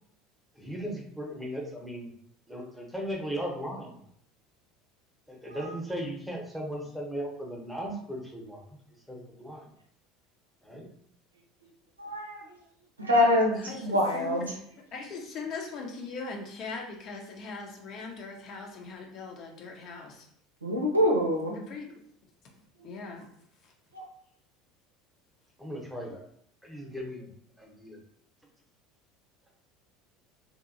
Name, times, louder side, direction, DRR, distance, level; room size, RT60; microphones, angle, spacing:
voice 1, 0.6-2.1 2.5-4.0 5.3-8.8 9.1-9.7 10.6-10.9 25.6-26.2 26.6-27.3 27.6-28.0, equal, ahead, -1 dB, 0.9 m, -37 dB
voice 2, 12.0-12.4 13.0-14.5 20.6-21.6 23.9-24.0, left 1 dB, 85° right, 0 dB, 0.6 m, -25 dB
voice 3, 13.5-14.4 14.9-20.3 21.7-21.9 22.8-23.3, left 4 dB, 45° left, 2 dB, 0.7 m, -40 dB
2.8 x 2.6 x 2.6 m, 0.67 s
figure-of-eight pair, 70°, 0 cm